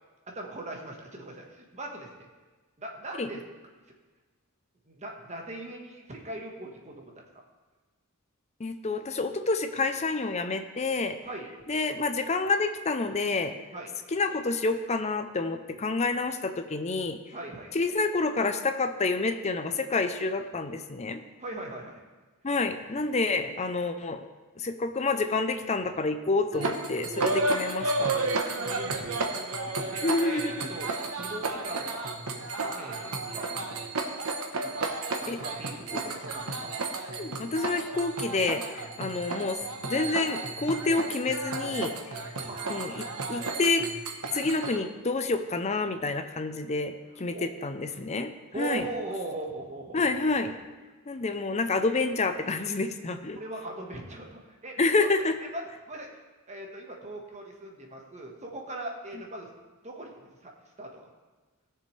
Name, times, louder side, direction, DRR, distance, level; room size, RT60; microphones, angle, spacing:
voice 1, 0.3-2.3 2.8-3.4 4.8-7.2 11.2-11.5 13.7-13.9 17.3-17.8 21.4-22.0 28.5-29.2 29.6-30.9 31.2-32.1 32.5-33.9 34.6-34.9 35.2-36.8 42.3-43.0 47.3-47.5 48.5-50.0 53.3-54.8 55.5-56.2 56.5-59.5 59.8-60.5 60.8-61.0, right 2 dB, 30° right, 1 dB, 1.4 m, -40 dB
voice 2, 8.6-11.2 11.7-13.6 14.1-17.2 17.7-21.2 22.4-24.2 24.6-28.1 30.0-30.7 35.3-35.4 35.9-36.0 37.2-42.2 42.7-43.9 44.3-48.8 49.9-50.6 51.1-53.4 54.8-55.4, left 3 dB, 30° left, 8 dB, 0.6 m, -28 dB
sound 1, 26.5-44.8, right 3 dB, 80° right, 1.1 m, -32 dB
17.5 x 6.8 x 3.3 m, 1.3 s
head